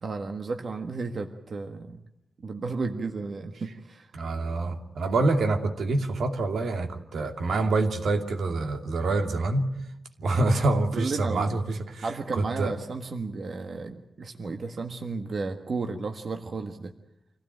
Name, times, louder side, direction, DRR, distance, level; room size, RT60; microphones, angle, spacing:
voice 1, 0.0-2.0 2.4-4.1 10.4-11.5 12.0-16.9, right 4 dB, 50° right, 5 dB, 1.5 m, -33 dB
voice 2, 4.1-9.7 10.2-12.0 12.3-12.7, right 2 dB, 80° right, 4 dB, 2.7 m, -26 dB
26.0 x 16.5 x 9.2 m, 0.84 s
wide cardioid pair, 145°, 0 cm